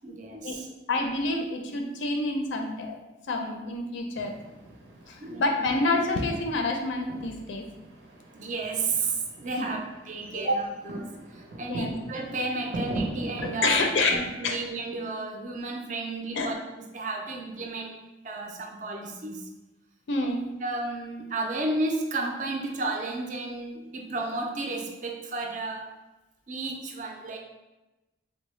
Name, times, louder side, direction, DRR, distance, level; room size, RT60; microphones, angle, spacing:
voice 1, 0.0-0.7 5.2-5.6 8.3-13.8 14.1-18.0 18.2-19.5 20.6-25.9 26.5-27.4, right 3 dB, 40° right, 2 dB, 0.4 m, -32 dB
voice 2, 0.9-3.0 3.3-4.3 5.1-7.7 9.6-9.8 11.7-12.0 13.4-14.6 16.3-16.5 20.1-20.6, left 2 dB, 75° left, 3 dB, 0.4 m, -28 dB
sound 1, 4.1-13.9, right 2 dB, 85° right, 0.6 m, -40 dB
3.8 x 2.1 x 3.1 m, 1.0 s
head